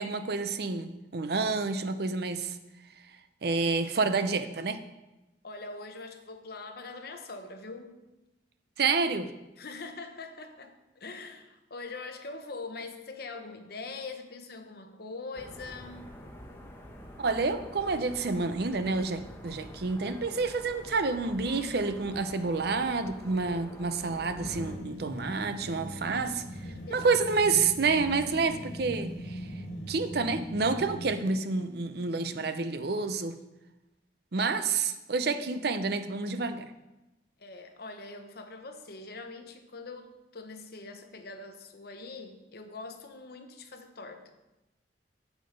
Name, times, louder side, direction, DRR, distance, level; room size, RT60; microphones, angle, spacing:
voice 1, 0.0-2.6 3.4-4.8 8.8-9.3 17.2-26.4 26.9-29.5 29.9-33.4 34.3-36.7, right 4 dB, 60° right, 10 dB, 0.6 m, -29 dB
voice 2, 5.4-8.0 9.6-16.2 26.6-27.1 34.3-34.6 37.4-44.3, left 3 dB, 60° left, 5 dB, 1.0 m, -43 dB
sound 1, 15.3-24.8, equal, 15° left, 1.1 m, -47 dB
sound 2, 24.4-31.2, equal, 75° left, 2.0 m, -40 dB
7.7 x 7.4 x 5.2 m, 1.0 s
head